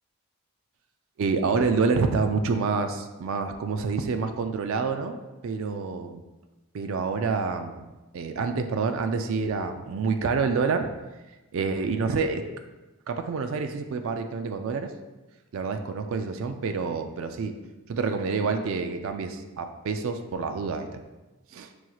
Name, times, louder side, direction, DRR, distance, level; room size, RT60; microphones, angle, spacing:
voice 1, 1.2-5.2 5.4-6.2 6.7-7.9 8.1-10.9 11.5-12.4 13.1-14.9 15.5-17.6 17.9-21.0 21.5-21.7, right 4 dB, 65° right, 7 dB, 0.3 m, -27 dB
6.1 x 2.3 x 2.9 m, 1.1 s
head